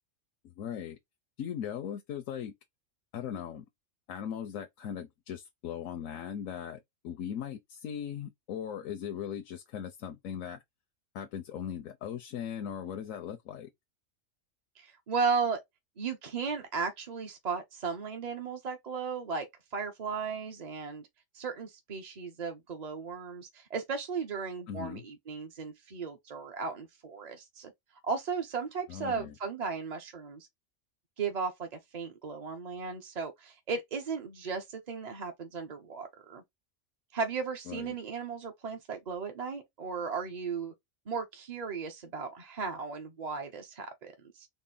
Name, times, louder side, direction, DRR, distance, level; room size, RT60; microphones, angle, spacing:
voice 1, 0.4-1.0 1.4-2.5 3.1-3.7 4.1-10.6 11.1-13.7 24.7-25.0 28.9-29.3 37.7-38.0, left 9 dB, 90° left, 1.0 m, -39 dB
voice 2, 14.8-15.6 16.0-19.5 19.7-21.1 21.3-27.7 28.0-30.5 31.2-36.4 37.1-40.7 41.1-44.5, right 5 dB, 40° right, 0.6 m, -35 dB
4.2 x 2.0 x 3.7 m
omnidirectional pair, 1.3 m